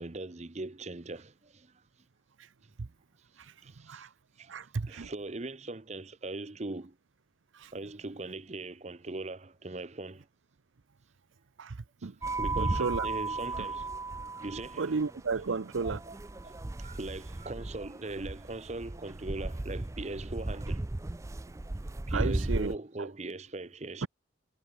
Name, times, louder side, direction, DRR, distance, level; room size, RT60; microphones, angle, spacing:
voice 1, 0.0-1.7 3.3-4.1 4.4-4.5 4.9-6.9 7.7-10.3 12.4-13.9 14.4-14.9 15.3-15.4 15.8-16.2 16.4-20.8 22.1-24.1, right 2 dB, 35° right, 0.8 m, -40 dB
voice 2, 3.4-4.1 4.5-5.1 7.5-7.7 11.6-12.2 12.6-13.1 14.8-16.0 22.1-22.7 23.0-23.1 24.0-24.1, right 4 dB, 90° right, 0.7 m, -33 dB
sound 1, 12.2-22.8, right 2 dB, 15° right, 0.4 m, -35 dB
head